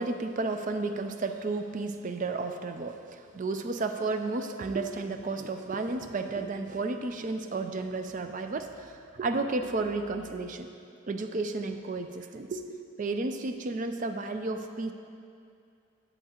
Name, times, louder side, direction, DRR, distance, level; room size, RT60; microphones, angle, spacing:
voice 1, 0.0-10.7 11.1-14.9, right 3 dB, 35° right, 7 dB, 0.4 m, -32 dB
11.5 x 8.4 x 2.8 m, 2.5 s
head